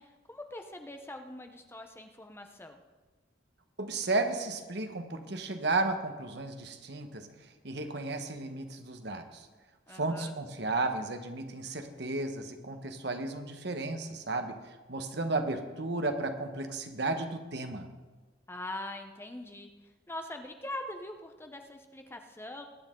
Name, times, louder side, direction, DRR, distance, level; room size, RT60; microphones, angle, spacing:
voice 1, 0.0-2.8 9.9-10.3 18.5-19.7 20.1-22.7, left 1 dB, 15° left, 5 dB, 0.8 m, -42 dB
voice 2, 3.8-9.5 9.9-17.9, right 2 dB, 60° right, 6 dB, 1.3 m, -34 dB
21.0 x 9.8 x 3.8 m, 1.3 s
head